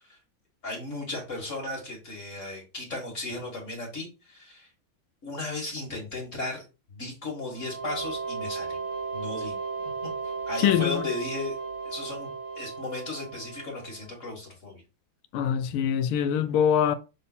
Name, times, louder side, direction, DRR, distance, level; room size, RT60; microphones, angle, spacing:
voice 1, 0.6-4.7 5.2-8.8 9.1-9.6 10.5-11.6 11.8-12.3 12.6-14.8, left 2 dB, 35° left, 2.0 m, -35 dB
sound 1, 7.5-14.1, right 4 dB, 55° right, 1.4 m, -35 dB
voice 2, 10.6-11.0 15.3-16.9, left 9 dB, 90° left, 1.6 m, -23 dB
6.5 x 3.8 x 4.1 m
omnidirectional pair, 2.3 m